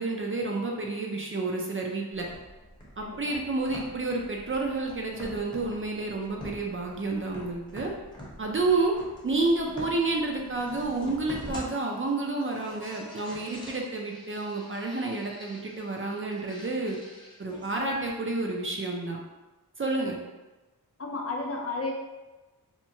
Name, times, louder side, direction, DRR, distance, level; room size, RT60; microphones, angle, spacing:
voice 1, 0.0-2.3 3.0-7.9 8.4-8.9 9.2-17.0 17.4-19.2 19.8-20.2, right 3 dB, 35° right, 0 dB, 0.4 m, -30 dB
sound 1, 2.1-18.1, equal, 10° left, 0.7 m, -46 dB
voice 2, 3.0-3.4 21.0-21.9, left 3 dB, 40° left, 0 dB, 0.4 m, -33 dB
2.8 x 2.1 x 2.6 m, 1.1 s
wide cardioid pair, 75°, 39 cm